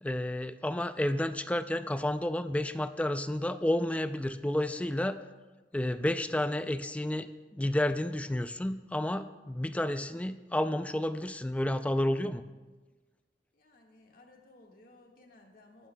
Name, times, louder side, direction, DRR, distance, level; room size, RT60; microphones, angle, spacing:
voice 1, 0.0-5.2 5.7-7.3 7.5-12.4, left 1 dB, 10° left, 10 dB, 0.3 m, -31 dB
voice 2, 13.6-15.9, left 2 dB, 55° left, 1 dB, 1.7 m, -58 dB
22.0 x 12.0 x 2.3 m, 1.3 s
head